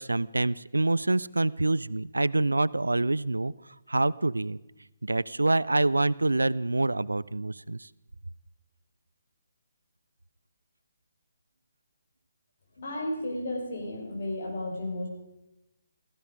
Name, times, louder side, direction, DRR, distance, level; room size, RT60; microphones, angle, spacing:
voice 1, 0.0-3.5 3.9-4.6 5.0-7.9, right 2 dB, 80° right, 21 dB, 0.5 m, -26 dB
voice 2, 12.8-15.1, left 1 dB, 50° left, 0 dB, 5.3 m, -33 dB
16.5 x 15.5 x 5.1 m, 0.95 s
figure-of-eight pair, 140°, 0 cm